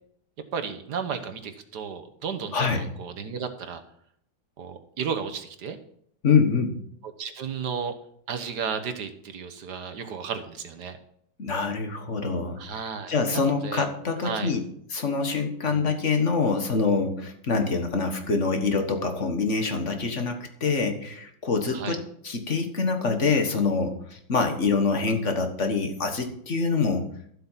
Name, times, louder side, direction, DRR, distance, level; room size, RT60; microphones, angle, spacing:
voice 1, 0.5-3.8 4.6-5.8 7.0-7.9 8.3-11.0 12.6-13.9 14.2-14.5 15.6-15.9 21.7-22.0, right 6 dB, 55° right, 8 dB, 1.5 m, -33 dB
voice 2, 2.5-2.8 6.2-6.8 11.4-12.6 13.1-14.6 14.9-27.1, left 4 dB, 40° left, 6 dB, 1.6 m, -25 dB
13.0 x 7.7 x 5.7 m, 0.66 s
omnidirectional pair, 2.3 m